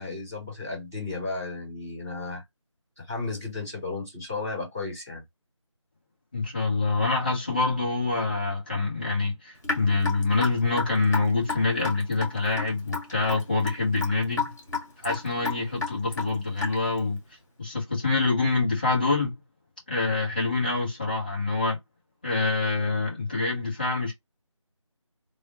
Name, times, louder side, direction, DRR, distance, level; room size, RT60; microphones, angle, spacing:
voice 1, 0.0-2.4 3.1-5.2, left 3 dB, 5° right, 0.6 m, -34 dB
voice 2, 6.3-14.5 15.0-17.2 17.6-19.3 19.9-21.8 22.2-24.1, left 3 dB, 15° left, 1.0 m, -26 dB
Raindrop / Drip, 9.6-17.0, left 4 dB, 35° left, 2.0 m, -32 dB
3.4 x 2.4 x 2.7 m
figure-of-eight pair, 165°, 17 cm